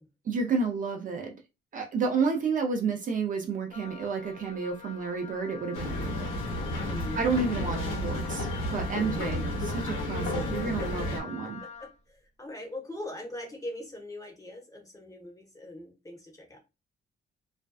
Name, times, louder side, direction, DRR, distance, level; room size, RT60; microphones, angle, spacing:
voice 1, 0.3-1.3 1.7-6.3 7.1-11.6, right 4 dB, 40° right, 3 dB, 0.5 m, -30 dB
Wind instrument woodwind instrument, 3.7-12.0, left 6 dB, 35° left, 0.5 m, -44 dB
sound 1, 5.7-11.2, left 1 dB, 85° left, 0.9 m, -32 dB
voice 2, 6.8-7.2 7.6-7.9 9.0-9.3 10.8-10.9 11.2-11.3 11.6-16.6, left 1 dB, 15° left, 1 dB, 0.9 m, -42 dB
2.4 x 2.2 x 2.3 m, 0.27 s
cardioid pair, 90°, 20 cm